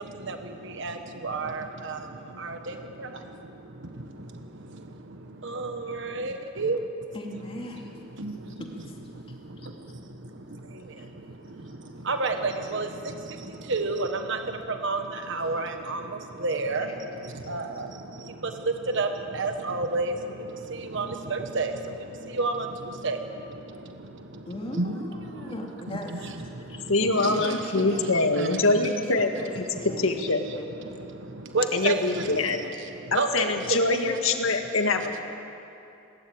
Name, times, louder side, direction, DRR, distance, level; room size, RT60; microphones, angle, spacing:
voice 1, 0.0-6.9 8.1-8.7 9.1-25.5 26.1-28.9 29.4-34.4, right 3 dB, 60° right, 6 dB, 1.4 m, -32 dB
voice 2, 7.1-7.9 8.6-9.0 9.3-9.7 11.0-11.1 11.8-11.9 17.7-17.8 24.5-26.3 26.7-28.0 28.8-30.1 31.5-31.9, left 1 dB, 30° left, 0 dB, 2.7 m, -39 dB
voice 3, 26.9-29.3 29.8-30.4 31.7-32.6 33.1-35.2, left 3 dB, 90° left, 5 dB, 1.8 m, -24 dB
20.5 x 18.0 x 8.9 m, 2.8 s
head